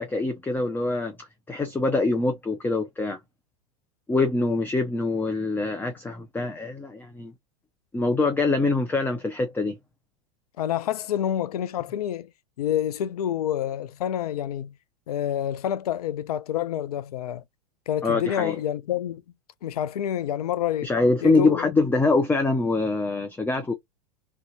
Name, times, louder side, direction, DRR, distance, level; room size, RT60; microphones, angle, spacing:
voice 1, 0.0-3.2 4.1-7.3 7.9-9.8 18.0-18.6 20.8-23.7, left 3 dB, 10° left, 0.5 m, -24 dB
voice 2, 10.6-12.3 12.6-14.7 15.1-17.4 17.9-19.2 19.6-20.9 21.2-21.7, left 10 dB, 75° left, 0.5 m, -28 dB
3.3 x 2.8 x 2.7 m
hypercardioid pair, 100°, 19 cm